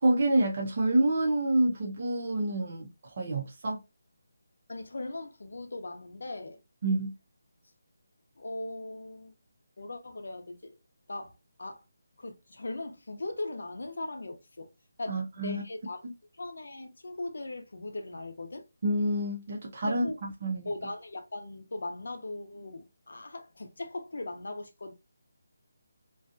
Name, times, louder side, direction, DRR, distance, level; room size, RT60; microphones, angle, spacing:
voice 1, 0.0-3.8 6.8-7.1 15.1-15.6 18.8-20.7, right 1 dB, 30° right, 0.5 m, -28 dB
voice 2, 4.7-6.6 8.4-9.3 9.8-10.8 11.1-11.3 11.6-11.8 12.2-14.7 15.0-16.1 16.4-18.6 19.8-20.2 20.6-24.9, left 2 dB, 65° left, 0.7 m, -39 dB
2.6 x 2.3 x 2.5 m
hypercardioid pair, 180°, 0 cm